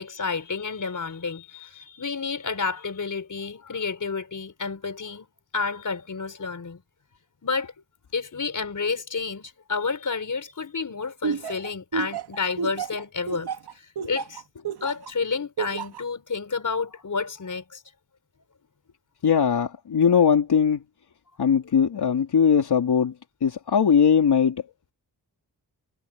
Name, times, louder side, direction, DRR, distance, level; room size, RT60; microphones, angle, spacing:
voice 1, 0.0-5.3 5.5-6.8 7.4-7.7 8.1-14.4 14.8-17.8, left 4 dB, 50° left, 4.6 m, -30 dB
Laughter, 11.2-15.1 15.6-16.0, right 6 dB, 70° right, 2.5 m, -30 dB
voice 2, 19.2-20.8 21.4-23.1 23.4-24.6, left 7 dB, 70° left, 3.9 m, -20 dB
cardioid pair, 70°, 40 cm